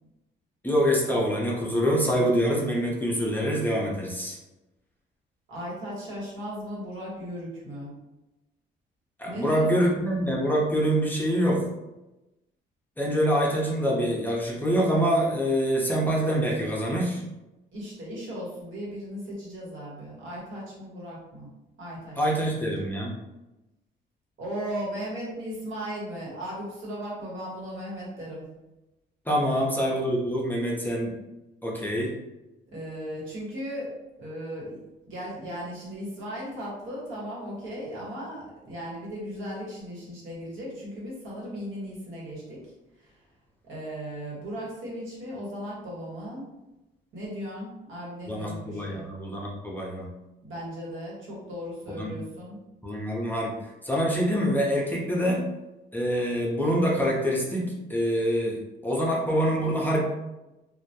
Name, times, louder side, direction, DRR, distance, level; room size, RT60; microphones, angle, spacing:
voice 1, 0.6-4.4 9.2-11.7 13.0-17.2 22.2-23.1 29.3-31.1 31.6-32.1 48.3-50.1 51.9-52.1 52.8-53.5 53.8-55.4 55.9-60.0, equal, 10° left, -3 dB, 0.6 m, -25 dB
voice 2, 5.5-7.9 9.2-10.0 17.7-21.5 21.8-22.5 24.4-28.4 29.4-29.6 32.7-42.6 43.0-43.1 43.6-46.5 47.1-49.1 50.4-52.6, equal, 80° right, -5 dB, 1.1 m, -37 dB
2.2 x 2.1 x 2.7 m, 0.98 s
cardioid pair, 90°, 20 cm